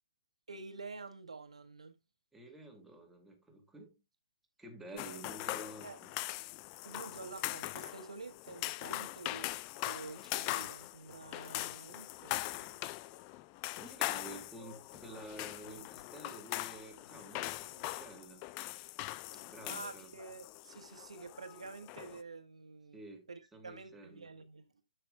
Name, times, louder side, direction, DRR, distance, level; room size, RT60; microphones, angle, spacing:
voice 1, 0.5-1.9 4.9-5.2 5.8-6.0 6.8-9.5 9.8-12.8 15.6-15.8 19.3-23.0 23.3-24.7, right 4 dB, 80° right, 1.4 m, -49 dB
voice 2, 2.3-4.0 4.6-6.1 13.8-18.4 19.3-20.1 22.9-24.3, right 1 dB, 5° right, 2.2 m, -51 dB
sound 1, 5.0-22.2, left 17 dB, 30° left, 0.3 m, -41 dB
13.5 x 5.9 x 2.2 m
figure-of-eight pair, 130°, 3 cm